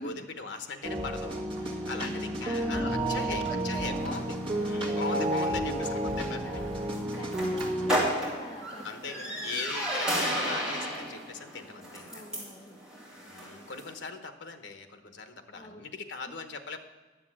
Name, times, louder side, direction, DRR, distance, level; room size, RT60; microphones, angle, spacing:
voice 1, 0.0-4.3 4.6-6.7 8.8-12.2 13.3-16.8, left 4 dB, 75° left, 7 dB, 1.0 m, -40 dB
sound 1, 0.8-8.0, right 1 dB, 30° right, 1.8 m, -31 dB
voice 2, 1.8-4.2 4.7-6.7 7.0-9.7 12.1-12.8 15.5-15.9 16.2-16.3, equal, 25° left, 0 dB, 0.9 m, -44 dB
sound 2, 3.9-14.0, equal, 5° right, 2.9 m, -35 dB
10.5 x 7.5 x 7.5 m, 1.3 s
head